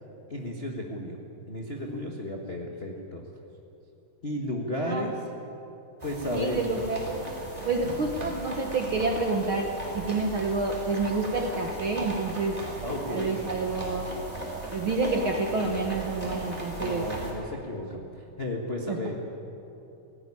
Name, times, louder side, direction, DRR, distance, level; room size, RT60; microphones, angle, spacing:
voice 1, 0.3-1.2 1.5-3.2 4.2-5.1 6.0-6.6 7.8-8.1 12.8-13.3 16.8-19.2, left 1 dB, 50° left, -1 dB, 0.7 m, -33 dB
Piano, 1.8-2.7, left 1 dB, 10° left, 5.8 m, -44 dB
sound 1, 6.0-17.3, right 2 dB, 10° right, 3.5 m, -37 dB
voice 2, 6.3-7.3 7.6-12.6 13.1-14.1 14.7-17.0 18.9-19.0, right 3 dB, 60° right, 3 dB, 1.4 m, -28 dB
17.5 x 16.0 x 9.9 m, 2.9 s
omnidirectional pair, 3.8 m